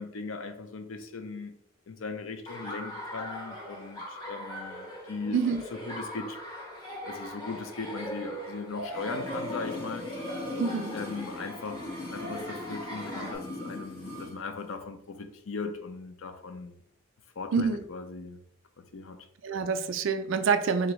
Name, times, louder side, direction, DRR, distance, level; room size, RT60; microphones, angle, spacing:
voice 1, 0.0-1.5 1.9-5.4 5.7-6.4 7.0-10.1 10.9-16.8 17.4-18.4 18.9-19.3 19.5-19.6, left 4 dB, 70° left, 0.5 m, -38 dB
Laughter, 2.5-13.4, equal, 20° left, 1.0 m, -40 dB
voice 2, 5.3-5.6 10.6-11.0 17.5-17.8 19.4-20.9, right 5 dB, 60° right, 0.3 m, -27 dB
sound 1, 8.9-14.4 14.6-14.7, left 2 dB, 45° left, 1.1 m, -40 dB
3.8 x 2.6 x 3.1 m
head